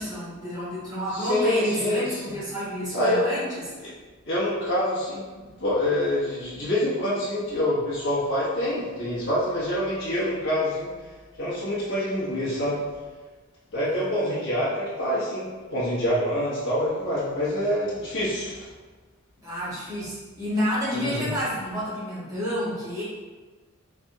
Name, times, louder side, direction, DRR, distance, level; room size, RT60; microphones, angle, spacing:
voice 1, 0.0-3.7 14.0-14.2 19.4-23.0, equal, 15° right, -11 dB, 1.5 m, -30 dB
voice 2, 1.1-2.2 2.9-3.3 3.8-3.9 4.3-10.9 11.4-12.8 13.7-18.6 20.9-21.3, left 1 dB, 55° left, -9 dB, 1.1 m, -26 dB
3.4 x 3.4 x 2.7 m, 1.3 s
head